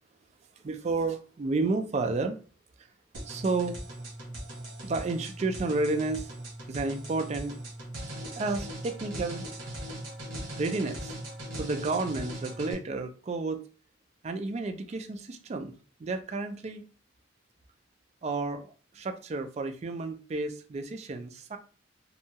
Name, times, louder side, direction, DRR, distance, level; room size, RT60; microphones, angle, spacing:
voice 1, 0.6-2.4 2.8-2.9 3.3-3.8 4.8-6.3 6.7-7.5 8.4-9.5 10.6-11.2 11.5-13.7 14.2-16.8 18.2-21.6, right 3 dB, 35° right, 0.3 m, -31 dB
sound 1, 3.1-12.7, right 1 dB, 85° right, 1.1 m, -40 dB
2.7 x 2.2 x 2.7 m
head